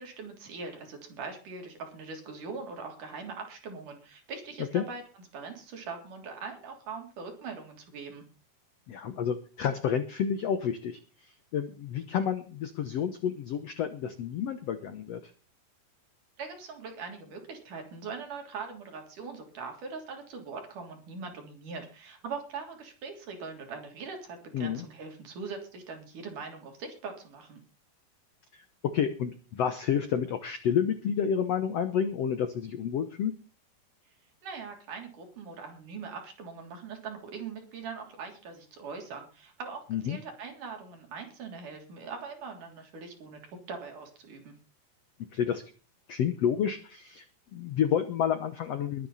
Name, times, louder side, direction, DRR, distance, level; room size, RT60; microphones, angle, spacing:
voice 1, 0.0-5.0 5.3-8.2 16.4-27.6 34.4-43.4 43.7-44.5, right 4 dB, 55° right, 3 dB, 4.7 m, -41 dB
voice 2, 8.9-15.3 24.5-24.8 28.5-33.3 39.9-40.2 45.3-45.6 46.1-47.2 47.5-49.1, left 8 dB, 70° left, 10 dB, 1.5 m, -30 dB
21.5 x 9.3 x 4.2 m, 0.35 s
omnidirectional pair, 4.4 m